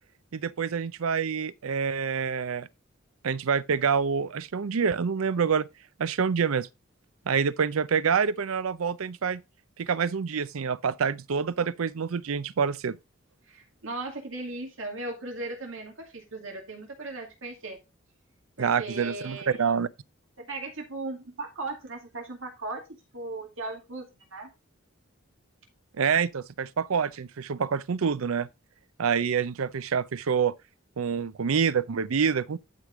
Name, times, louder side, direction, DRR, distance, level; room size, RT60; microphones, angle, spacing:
voice 1, 0.3-2.7 3.2-5.7 6.0-6.7 7.3-9.4 9.8-13.0 18.6-19.9 26.0-28.5 29.0-30.5 31.0-32.6, right 6 dB, 90° right, 0.5 m, -27 dB
voice 2, 13.5-17.8 18.6-19.8 20.4-22.8 23.1-24.5, right 2 dB, 75° right, 2.3 m, -37 dB
11.0 x 5.0 x 3.7 m
head